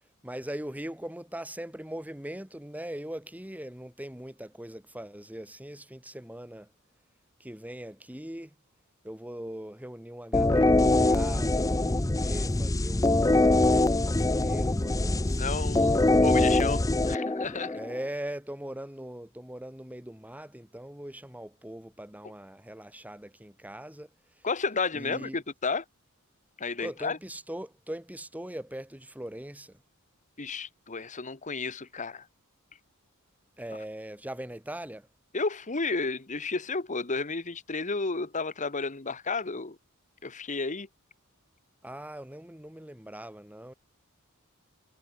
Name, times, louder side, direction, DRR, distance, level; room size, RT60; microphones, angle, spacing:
voice 1, 0.2-6.7 7.4-8.6 9.0-16.5 17.7-24.1 24.4-24.5 24.9-25.4 26.8-29.8 33.6-35.1 41.8-43.7, right 1 dB, 5° right, 2.6 m, -41 dB
sound 1, 10.3-18.0, left 2 dB, 15° left, 0.6 m, -23 dB
voice 2, 15.4-17.8 24.4-25.8 26.6-27.2 30.4-32.2 35.3-39.8 40.2-40.9, left 4 dB, 35° left, 1.4 m, -32 dB
head